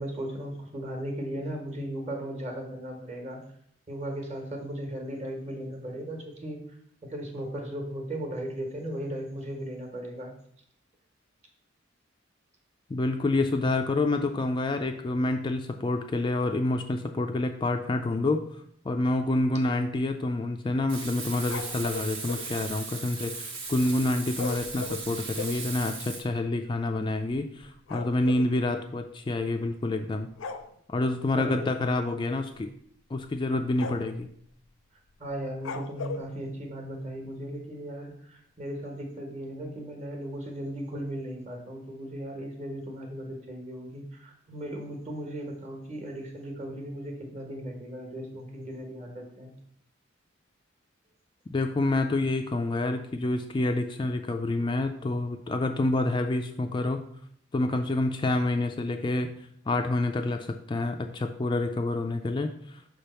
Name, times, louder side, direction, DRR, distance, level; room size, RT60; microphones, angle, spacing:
voice 1, 0.0-3.4 3.9-6.6 7.0-10.3 31.3-31.9 35.2-49.5, right 1 dB, 35° right, 2 dB, 1.4 m, -37 dB
voice 2, 12.9-18.4 18.9-30.3 30.9-32.7 33.1-34.3 51.5-57.0 57.5-59.3 59.7-62.8, left 2 dB, 25° left, 5 dB, 0.3 m, -28 dB
Frying (food), 20.9-26.2, right 4 dB, 70° right, 1.4 m, -38 dB
sound 1, 21.5-22.5 24.3-25.7 26.4-26.5 26.7-26.9 27.2-28.5 29.6-29.9 30.3-30.7 32.0-32.3 32.6-32.7 33.2-33.4 33.8-34.2 35.6-36.3, left 4 dB, 80° left, 0.5 m, -38 dB
6.0 x 3.4 x 5.5 m, 0.66 s
head